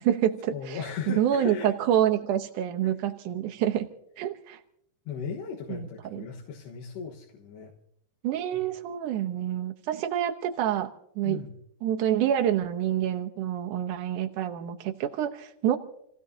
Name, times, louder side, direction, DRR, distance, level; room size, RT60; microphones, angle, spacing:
voice 1, 0.0-3.9 4.2-4.6 5.7-6.3 8.2-10.9 11.2-11.4 11.8-15.8, right 10 dB, 80° right, 4 dB, 1.8 m, -27 dB
voice 2, 0.5-1.7 2.8-2.9 5.1-7.7 8.5-8.6 11.2-11.6, left 6 dB, 85° left, -1 dB, 3.5 m, -37 dB
29.0 x 17.0 x 2.8 m, 0.74 s
omnidirectional pair, 4.8 m